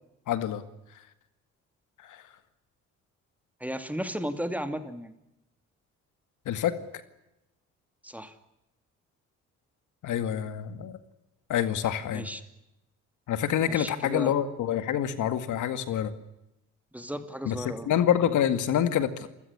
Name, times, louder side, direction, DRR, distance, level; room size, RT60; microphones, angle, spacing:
voice 1, 0.3-0.6 0.9-1.0 2.0-2.2 6.5-6.7 10.0-11.0 11.5-12.3 13.3-16.1 17.4-19.3, left 10 dB, 80° left, 11 dB, 2.1 m, -27 dB
voice 2, 3.6-5.1 8.0-8.3 12.1-12.4 13.7-14.3 16.9-17.9, equal, 5° right, 10 dB, 2.6 m, -34 dB
28.5 x 16.0 x 9.7 m, 0.90 s
cardioid pair, 90°, 30 cm